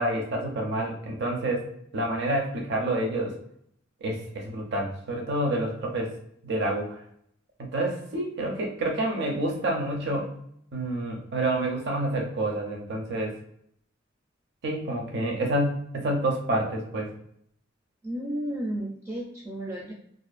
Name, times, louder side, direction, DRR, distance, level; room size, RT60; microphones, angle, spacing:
voice 1, 0.0-1.6 1.9-3.3 4.0-6.1 6.4-6.9 7.6-10.3 10.7-13.3 14.6-17.1, right 1 dB, 60° right, 1 dB, 0.5 m, -28 dB
voice 2, 18.0-19.9, right 1 dB, 15° right, -3 dB, 0.4 m, -33 dB
2.5 x 2.3 x 2.4 m, 0.70 s
head